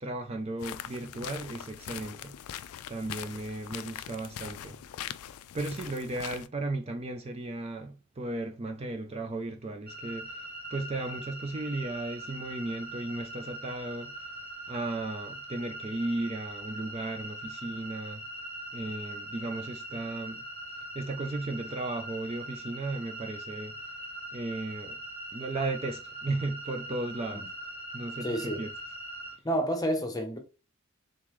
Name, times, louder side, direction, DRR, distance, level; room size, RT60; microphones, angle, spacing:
voice 1, 0.0-2.4 2.9-4.8 5.5-14.3 14.7-18.2 18.7-20.4 20.9-23.7 24.3-25.0 25.3-27.4 27.9-28.7, right 2 dB, 25° right, 0.4 m, -35 dB
sound 1, 0.6-6.5, left 10 dB, 80° left, 0.3 m, -42 dB
sound 2, 9.9-29.3, right 1 dB, 10° right, 1.8 m, -42 dB
voice 2, 28.2-28.6 29.4-30.4, equal, 15° left, 0.8 m, -29 dB
3.8 x 3.7 x 3.0 m
head